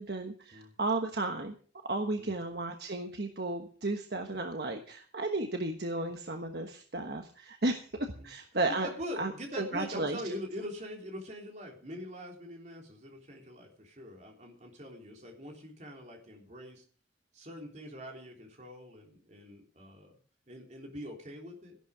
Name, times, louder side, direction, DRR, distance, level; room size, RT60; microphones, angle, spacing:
voice 1, 0.0-1.5 1.9-8.9 9.2-10.2, right 2 dB, 60° right, 4 dB, 1.3 m, -34 dB
voice 2, 8.8-16.8 17.3-20.1 20.5-21.8, equal, 40° right, 1 dB, 3.5 m, -43 dB
13.5 x 11.5 x 5.0 m, 0.43 s
head